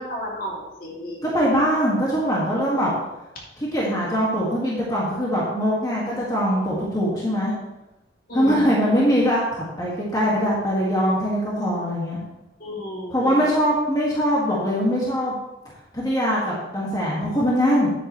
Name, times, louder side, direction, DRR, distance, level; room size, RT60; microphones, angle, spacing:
voice 1, 0.0-1.3 8.3-8.6 12.6-13.3, equal, 55° left, -3 dB, 2.5 m, -32 dB
voice 2, 1.2-2.9 3.6-7.5 8.3-12.2 13.1-15.4 15.9-17.9, equal, 20° left, -5 dB, 1.9 m, -22 dB
10.0 x 9.1 x 3.1 m, 0.99 s
head